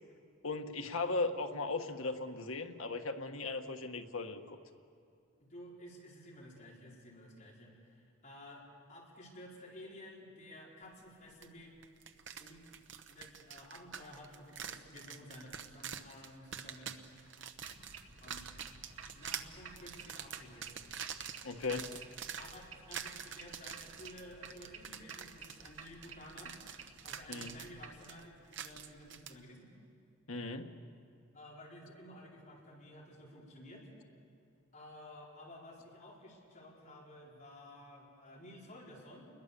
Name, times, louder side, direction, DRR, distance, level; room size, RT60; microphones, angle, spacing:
voice 1, 0.4-4.6 21.4-21.9 27.3-27.6 30.3-30.7, left 3 dB, 80° left, 5 dB, 1.5 m, -37 dB
voice 2, 5.4-8.6 8.9-11.7 12.4-12.6 13.1-17.5 18.2-18.4 19.1-20.7 22.4-29.7 31.3-33.9 34.7-39.3, left 1 dB, 35° left, -4 dB, 5.0 m, -53 dB
sound 1, 11.4-11.5 11.8-29.3, right 8 dB, 60° right, 1.1 m, -46 dB
sound 2, 17.6-28.0, right 4 dB, 75° right, 2.5 m, -53 dB
29.0 x 21.5 x 7.0 m, 2.4 s
head